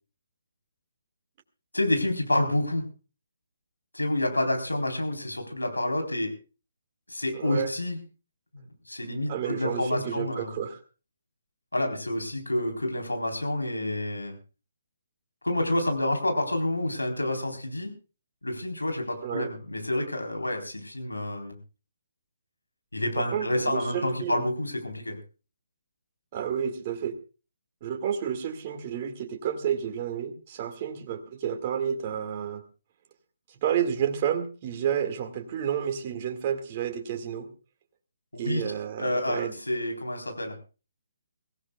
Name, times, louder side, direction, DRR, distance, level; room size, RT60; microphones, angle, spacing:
voice 1, 1.7-2.8 3.9-6.3 7.1-8.0 8.5-10.5 11.7-14.4 15.4-17.9 18.4-21.6 22.9-25.2 38.3-38.6 39.0-40.6, left 1 dB, 85° left, 4 dB, 3.9 m, -28 dB
voice 2, 7.3-7.7 9.3-10.8 19.2-19.5 23.2-24.4 26.3-27.1 27.8-32.6 33.5-37.5 38.3-39.6, right 8 dB, 35° right, 4 dB, 2.0 m, -30 dB
23.5 x 16.5 x 2.3 m, 0.33 s
figure-of-eight pair, 140°, 0 cm